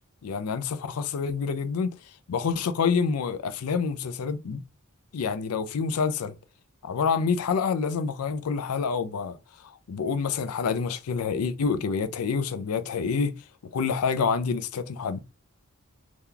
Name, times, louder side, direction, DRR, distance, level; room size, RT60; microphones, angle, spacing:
voice 1, 0.2-2.0 2.3-4.6 5.1-6.3 6.8-9.4 9.9-13.4 13.7-15.2, left 5 dB, 85° left, 0.4 m, -27 dB
2.9 x 2.2 x 3.7 m
head